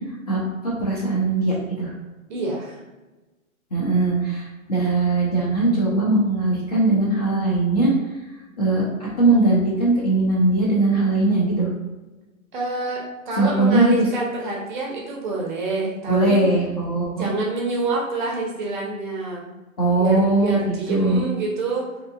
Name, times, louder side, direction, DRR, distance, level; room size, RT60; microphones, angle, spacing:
voice 1, 0.3-1.9 3.7-7.9 8.6-11.7 13.4-14.1 16.1-17.3 19.8-21.2, right 2 dB, 30° left, -5 dB, 0.4 m, -20 dB
voice 2, 2.3-2.8 12.5-16.4 17.2-19.5 20.0-21.9, right 3 dB, 35° right, -2 dB, 0.5 m, -27 dB
2.7 x 2.3 x 2.5 m, 1.1 s
hypercardioid pair, 150°, 42 cm